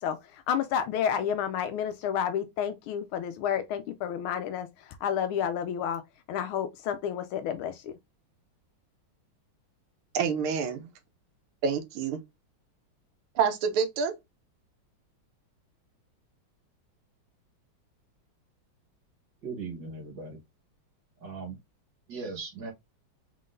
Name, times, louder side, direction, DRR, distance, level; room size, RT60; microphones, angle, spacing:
voice 1, 0.0-6.0 6.3-7.9, left 8 dB, 85° left, 1.4 m, -30 dB
voice 2, 10.1-10.9 11.6-12.2 13.3-14.1, right 6 dB, 85° right, 1.7 m, -27 dB
voice 3, 19.4-20.4 21.2-21.6 22.1-22.7, right 4 dB, 60° right, 1.9 m, -38 dB
4.1 x 3.8 x 2.5 m
omnidirectional pair, 2.3 m